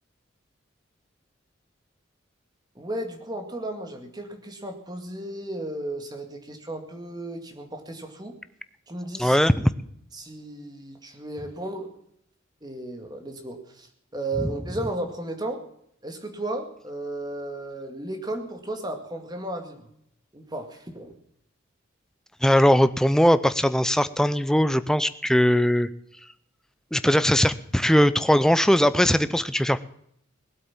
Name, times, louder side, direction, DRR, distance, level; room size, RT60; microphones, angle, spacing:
voice 1, 2.8-8.4 8.9-9.4 10.1-11.9 12.6-15.6 16.0-19.8 20.3-21.1, right 1 dB, 20° right, 4 dB, 2.1 m, -34 dB
voice 2, 9.2-9.7 22.4-25.9 26.9-29.8, equal, 5° left, 13 dB, 0.5 m, -20 dB
19.0 x 8.5 x 7.2 m, 0.70 s
head